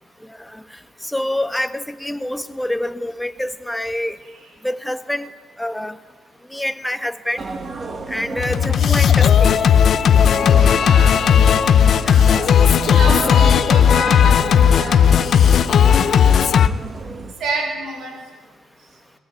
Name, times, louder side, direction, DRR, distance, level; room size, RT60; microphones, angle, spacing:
voice 1, 1.1-4.2 4.6-5.3 5.6-5.9 6.5-7.4 8.1-9.5 12.0-12.3, left 1 dB, 5° left, 10 dB, 1.4 m, -26 dB
sound 1, 7.4-17.3, right 3 dB, 40° right, 2.4 m, -32 dB
Singing, 8.4-16.7, left 8 dB, 60° left, 0.9 m, -14 dB
voice 2, 10.7-11.2 12.8-15.3 15.9-16.3 17.4-18.2, right 3 dB, 70° right, 3 dB, 5.8 m, -30 dB
22.0 x 20.0 x 9.3 m, 1.4 s
cardioid pair, 90°, 0 cm